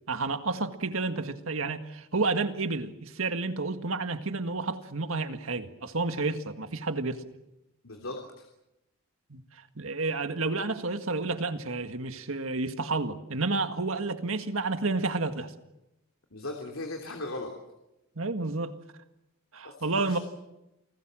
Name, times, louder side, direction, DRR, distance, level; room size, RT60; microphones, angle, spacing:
voice 1, 0.1-7.2 9.3-9.4 9.8-15.5 18.2-18.7 19.5-20.2, right 3 dB, 70° right, 1.8 m, -30 dB
voice 2, 7.8-8.4 16.3-17.5 19.6-20.2, left 2 dB, 70° left, 3.1 m, -38 dB
28.5 x 19.5 x 7.6 m
head